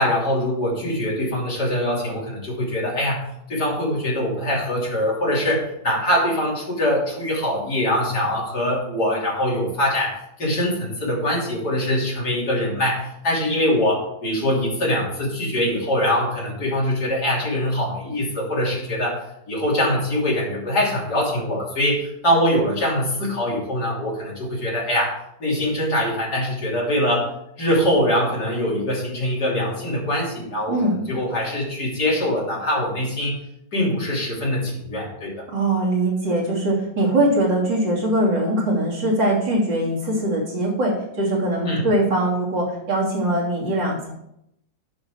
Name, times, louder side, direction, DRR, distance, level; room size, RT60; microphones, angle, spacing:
voice 1, 0.0-3.2 3.5-19.2 19.5-27.3 27.6-30.8 31.1-33.4 33.7-35.5 41.7-41.9, left 1 dB, 60° left, -4 dB, 3.5 m, -23 dB
voice 2, 30.7-31.0 35.5-44.1, right 1 dB, 80° right, -5 dB, 3.6 m, -22 dB
10.0 x 6.0 x 4.8 m, 0.78 s
omnidirectional pair, 2.0 m